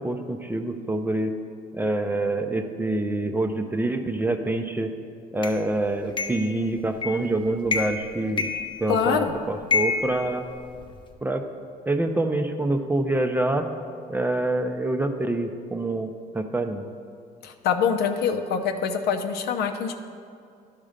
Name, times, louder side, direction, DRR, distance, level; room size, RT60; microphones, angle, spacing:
voice 1, 0.0-1.3 1.7-4.9 5.3-8.5 8.8-10.4 11.2-11.5 11.9-13.7 14.1-16.8, right 2 dB, 10° right, 6 dB, 0.5 m, -26 dB
sound 1, 5.4-5.6 6.2-6.5 7.0-7.3 7.7-8.1 8.4-9.2 9.7-11.0, left 5 dB, 30° left, 0.8 m, -28 dB
voice 2, 8.9-9.3 17.4-19.9, left 6 dB, 75° left, 6 dB, 0.7 m, -24 dB
11.0 x 3.7 x 6.5 m, 2.3 s
cardioid pair, 110°, 17 cm